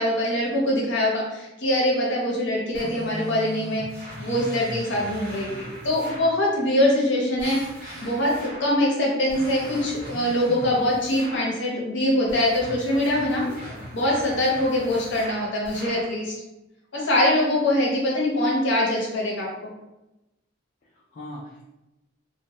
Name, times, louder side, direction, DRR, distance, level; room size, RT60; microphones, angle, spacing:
voice 1, 0.0-3.8 4.2-7.6 8.0-13.4 13.9-16.3 16.9-19.7, left 1 dB, 75° left, -4 dB, 0.8 m, -23 dB
sound 1, 2.7-6.4 7.4-8.8 9.3-11.6 12.3-16.1, right 1 dB, 50° right, 0.8 m, -39 dB
voice 2, 5.3-6.3 13.4-13.8 20.9-21.7, equal, 40° left, -6 dB, 0.4 m, -42 dB
2.2 x 2.1 x 2.8 m, 0.97 s
head